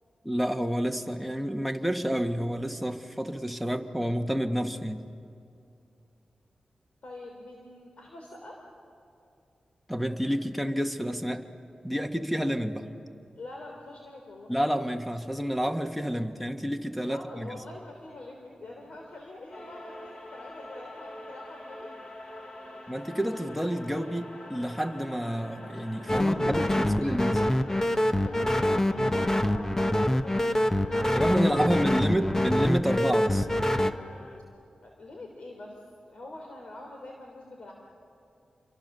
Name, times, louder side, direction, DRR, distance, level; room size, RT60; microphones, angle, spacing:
voice 1, 0.2-5.0 9.9-11.4 11.8-12.9 14.5-17.6 22.9-27.4 31.1-33.5, equal, ahead, 6 dB, 1.6 m, -29 dB
voice 2, 7.0-8.5 13.4-14.5 17.0-21.9 22.7-22.8 26.2-32.3 34.8-35.8 36.1-37.7, left 2 dB, 65° left, 1 dB, 3.4 m, -45 dB
sound 1, 19.5-34.4, left 1 dB, 50° left, 3.2 m, -46 dB
sound 2, 26.1-33.9, left 1 dB, 20° left, 1.0 m, -25 dB
28.5 x 23.0 x 6.8 m, 2.6 s
cardioid pair, 70°, 2 cm